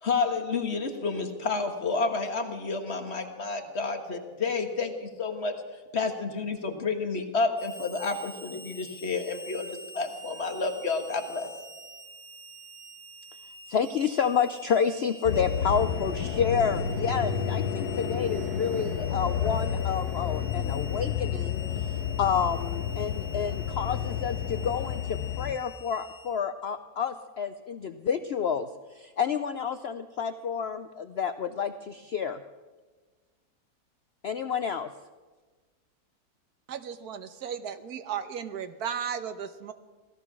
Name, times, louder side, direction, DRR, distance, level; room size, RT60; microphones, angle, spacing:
voice 1, 0.0-5.5 5.9-11.5, left 4 dB, 45° left, 5 dB, 1.7 m, -30 dB
Harmonica, 7.6-26.3, left 1 dB, 20° left, 3.2 m, -46 dB
voice 2, 13.7-21.6 22.2-28.7 28.9-32.4 34.2-34.9, left 7 dB, 60° left, 10 dB, 0.7 m, -29 dB
sound 1, 15.3-25.6, left 8 dB, 85° left, 1.4 m, -30 dB
voice 3, 36.7-39.7, right 8 dB, 80° right, 10 dB, 1.4 m, -35 dB
17.0 x 14.0 x 6.1 m, 1.3 s
omnidirectional pair, 1.6 m